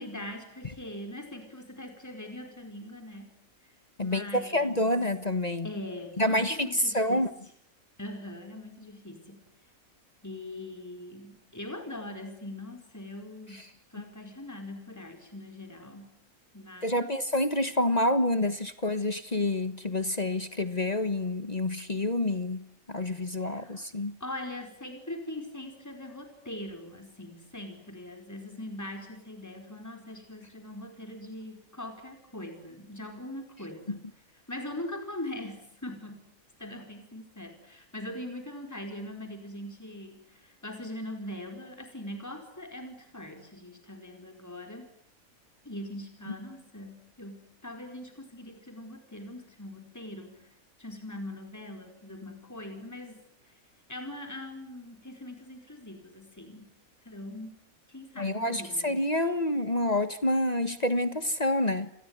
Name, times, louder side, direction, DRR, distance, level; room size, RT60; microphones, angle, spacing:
voice 1, 0.0-3.4 4.0-4.9 5.6-7.2 8.0-9.4 10.2-13.6 13.9-16.2 16.5-17.1 23.4-23.8 24.2-34.0 34.5-36.2 36.6-44.9 45.6-50.5 50.8-53.2 53.9-56.7 57.0-57.5 57.9-59.0, left 1 dB, 10° left, 5 dB, 4.7 m, -41 dB
voice 2, 4.0-5.7 6.2-7.3 16.8-24.2 33.9-34.0 58.2-61.9, left 1 dB, 30° left, 12 dB, 1.5 m, -28 dB
29.0 x 21.0 x 9.6 m, 0.63 s
omnidirectional pair, 1.5 m